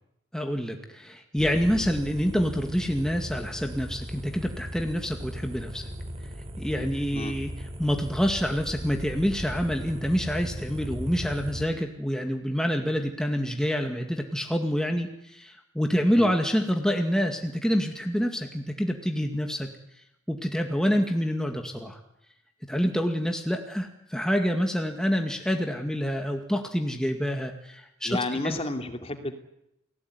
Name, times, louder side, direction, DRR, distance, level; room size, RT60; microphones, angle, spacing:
voice 1, 0.3-5.9 6.6-7.5 7.8-19.7 20.3-22.0 22.7-28.2 28.4-28.6, equal, 5° left, 3 dB, 2.0 m, -27 dB
sound 1, 1.4-11.7, equal, 30° right, 4.0 m, -37 dB
voice 2, 28.0-29.3, left 2 dB, 30° left, 6 dB, 2.7 m, -31 dB
30.0 x 19.0 x 9.6 m, 0.83 s
head